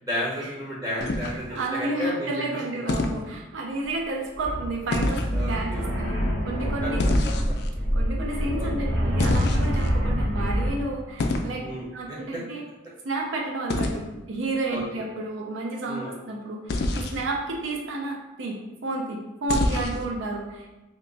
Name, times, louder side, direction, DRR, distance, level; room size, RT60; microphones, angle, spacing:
voice 1, 0.0-2.5 2.8-2.9 5.3-5.9 6.8-6.9 8.6-8.7 11.6-12.2 14.7-14.8 15.9-16.1, equal, 20° right, -8 dB, 1.1 m, -32 dB
sound 1, 1.0-1.7 2.9-3.2 4.9-5.3 7.0-7.7 9.2-9.9 11.2-11.5 13.7-14.0 16.7-17.2 19.5-20.1, left 2 dB, 60° left, 0.3 m, -26 dB
voice 2, 1.5-7.0 7.9-11.6 11.9-12.6 13.0-20.7, right 2 dB, 85° right, 0 dB, 0.5 m, -31 dB
sound 2, 4.4-10.7, equal, 65° right, 1.2 m, -26 dB
2.9 x 2.2 x 3.9 m, 1.1 s
head